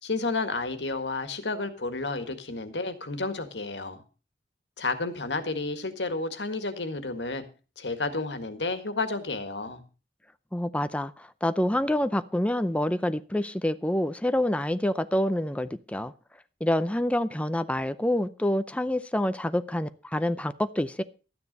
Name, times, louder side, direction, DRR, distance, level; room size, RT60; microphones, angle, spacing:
voice 1, 0.0-4.0 4.8-7.4 7.8-9.8, left 3 dB, 90° left, 9 dB, 1.8 m, -31 dB
voice 2, 10.5-16.1 16.6-21.0, left 1 dB, 5° left, 12 dB, 0.5 m, -27 dB
13.0 x 9.7 x 5.3 m, 0.34 s
head